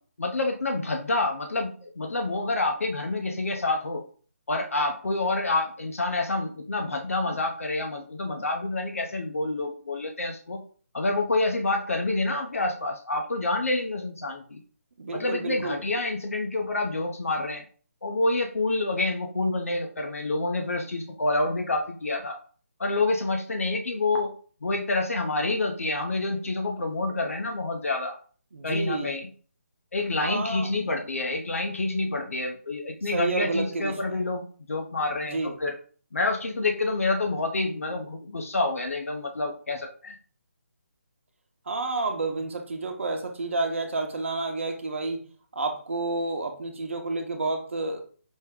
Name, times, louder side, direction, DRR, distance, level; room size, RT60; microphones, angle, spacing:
voice 1, 0.2-4.0 4.5-10.6 10.9-14.6 15.1-17.6 18.0-22.4 22.8-24.3 24.6-28.1 28.6-29.3 29.9-35.7 36.1-40.1, left 2 dB, 65° left, 2 dB, 0.7 m, -28 dB
voice 2, 15.0-15.8 28.5-29.1 30.2-30.7 33.0-34.2 35.2-35.5 41.7-45.3 45.5-48.0, right 3 dB, 55° right, 4 dB, 0.9 m, -30 dB
5.3 x 2.2 x 3.6 m, 0.42 s
figure-of-eight pair, 145°, 8 cm